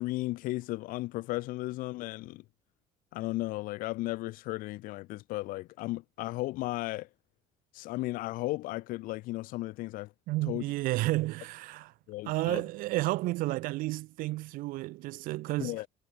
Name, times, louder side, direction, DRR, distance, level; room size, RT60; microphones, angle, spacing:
voice 1, 0.0-2.4 3.1-7.1 7.7-10.1 10.5-10.6 12.1-12.6 15.6-15.9, left 19 dB, 80° left, 5.5 m, -35 dB
voice 2, 10.3-11.9 12.2-15.8, right 19 dB, 80° right, 6.4 m, -31 dB
cardioid pair, 110°, 14 cm